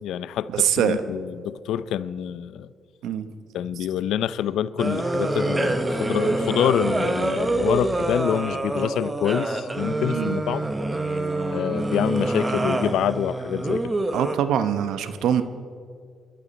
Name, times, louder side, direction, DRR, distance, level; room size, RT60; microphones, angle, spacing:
voice 1, 0.0-2.7 3.5-10.7 11.5-13.9, left 10 dB, 85° left, 16 dB, 0.5 m, -26 dB
voice 2, 0.5-1.0 3.0-3.3 10.1-10.4 14.1-15.4, right 9 dB, 85° right, 10 dB, 1.0 m, -23 dB
sound 1, 4.8-14.3, right 2 dB, 20° right, 1.3 m, -26 dB
28.5 x 12.0 x 4.2 m, 2.1 s
cardioid pair, 85°, 0 cm